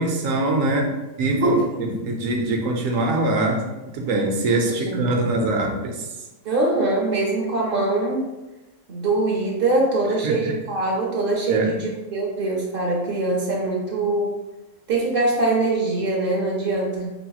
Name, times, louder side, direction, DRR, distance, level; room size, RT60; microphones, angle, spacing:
voice 1, 0.0-3.7 3.9-6.1 10.2-10.5 11.5-11.7, right 2 dB, 75° right, 2 dB, 1.0 m, -23 dB
voice 2, 4.8-5.5 6.4-8.2 8.9-14.3 14.9-17.1, right 2 dB, 50° right, -1 dB, 0.8 m, -23 dB
4.7 x 2.9 x 2.3 m, 1.0 s
omnidirectional pair, 1.4 m